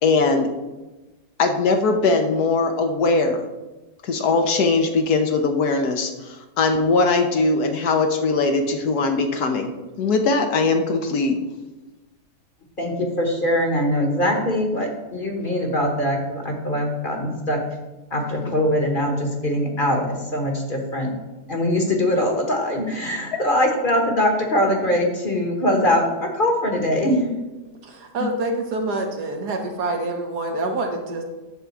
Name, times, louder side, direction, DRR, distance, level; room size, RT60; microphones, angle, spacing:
voice 1, 0.0-0.5 1.4-3.4 4.0-9.7 10.0-11.4 23.3-23.4 28.2-28.3, left 3 dB, 70° left, 5 dB, 1.4 m, -20 dB
voice 2, 12.8-17.6 18.1-21.1 21.5-27.3, left 1 dB, 35° left, 2 dB, 1.2 m, -22 dB
voice 3, 27.8-31.2, right 2 dB, 70° right, 3 dB, 1.8 m, -26 dB
10.0 x 3.7 x 7.1 m, 1.1 s
omnidirectional pair, 1.8 m